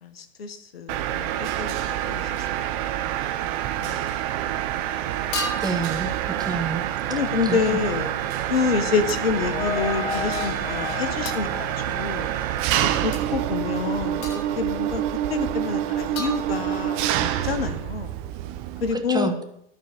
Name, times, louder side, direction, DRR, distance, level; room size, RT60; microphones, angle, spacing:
voice 1, 0.0-2.6 3.0-4.1 7.1-8.1 8.5-12.3 12.8-15.0 15.3-17.1 17.4-18.2 18.8-19.3, left 5 dB, 90° left, 9 dB, 1.0 m, -28 dB
Mechanisms, 0.9-18.9, right 12 dB, 55° right, 0.9 m, -27 dB
sound 1, 4.0-4.2 5.3-5.9 9.1-9.3 11.3-11.5 13.1-13.2 14.2-14.7 16.2-17.0, left 2 dB, 60° left, 2.2 m, -34 dB
voice 2, 5.6-6.8 7.4-7.8 18.9-19.4, right 4 dB, 15° right, 6 dB, 1.2 m, -28 dB
sound 2, 8.8-12.7, left 7 dB, 20° left, 0.4 m, -33 dB
12.0 x 4.7 x 6.6 m, 0.79 s
hypercardioid pair, 90°, 30 cm